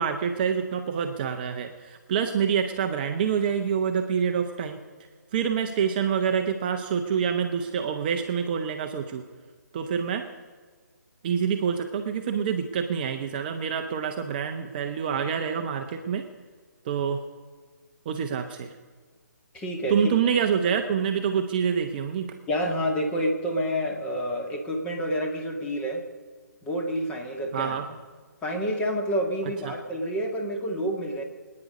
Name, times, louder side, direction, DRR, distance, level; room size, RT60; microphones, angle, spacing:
voice 1, 0.0-4.8 5.3-9.2 9.7-10.2 11.2-16.2 16.8-17.2 18.1-18.7 19.9-22.3 27.5-27.9 29.6-29.7, right 7 dB, 30° right, 6 dB, 0.9 m, -26 dB
voice 2, 19.5-20.0 22.5-26.0 26.6-28.0 28.4-31.2, equal, 10° left, 1 dB, 2.0 m, -28 dB
24.0 x 9.8 x 5.3 m, 1.5 s
figure-of-eight pair, 140°, 10 cm